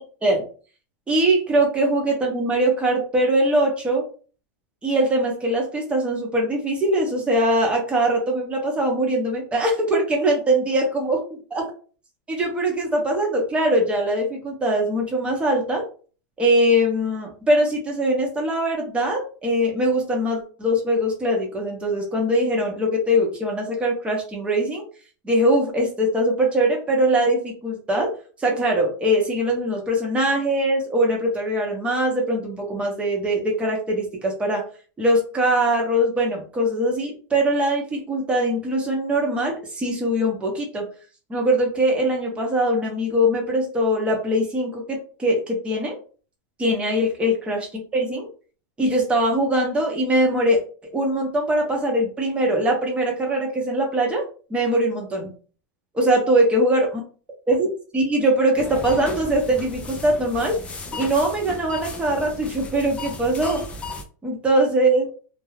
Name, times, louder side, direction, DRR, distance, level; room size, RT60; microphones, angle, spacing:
voice 1, 1.1-4.1 4.8-11.7 12.3-15.8 16.4-24.8 25.2-28.1 28.4-34.6 35.0-40.9 41.3-46.0 46.6-48.3 48.8-50.6 50.9-54.2 54.5-55.3 56.0-56.9 57.5-57.7 57.9-60.6 61.0-63.6 64.2-65.0, right 1 dB, 10° right, 0 dB, 0.7 m, -22 dB
sound 1, 58.6-64.0, left 2 dB, 10° left, 0.3 m, -35 dB
2.3 x 2.1 x 3.3 m, 0.39 s
supercardioid pair, 150°, 10 cm